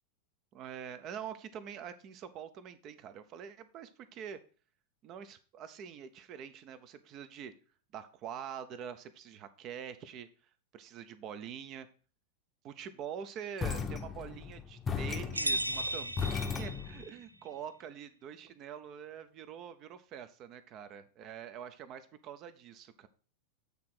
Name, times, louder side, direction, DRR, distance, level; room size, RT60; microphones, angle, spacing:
voice 1, 0.5-4.4 5.0-7.5 7.9-10.3 10.7-11.9 12.6-23.1, right 8 dB, 35° right, 12 dB, 0.7 m, -45 dB
sound 1, 13.6-17.1, left 6 dB, 20° left, 0.8 m, -37 dB
sound 2, 15.3-17.2, right 1 dB, 85° right, 0.4 m, -35 dB
8.4 x 3.8 x 6.1 m, 0.39 s
figure-of-eight pair, 90°, 0 cm